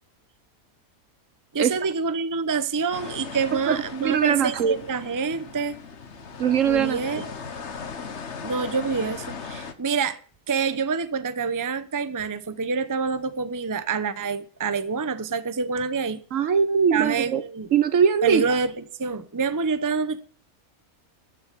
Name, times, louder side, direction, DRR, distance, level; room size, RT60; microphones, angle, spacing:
voice 1, 1.5-5.8 6.6-7.2 8.4-10.2 10.5-16.2 16.9-17.7 18.2-18.7 19.0-20.2, right 5 dB, 20° right, 0.6 m, -27 dB
sound 1, 2.9-9.7, left 5 dB, 55° left, 1.5 m, -38 dB
voice 2, 3.7-4.8 6.4-7.0 16.3-17.4 17.7-18.4, right 7 dB, 65° right, 1.3 m, -21 dB
14.0 x 6.4 x 8.3 m
omnidirectional pair, 1.5 m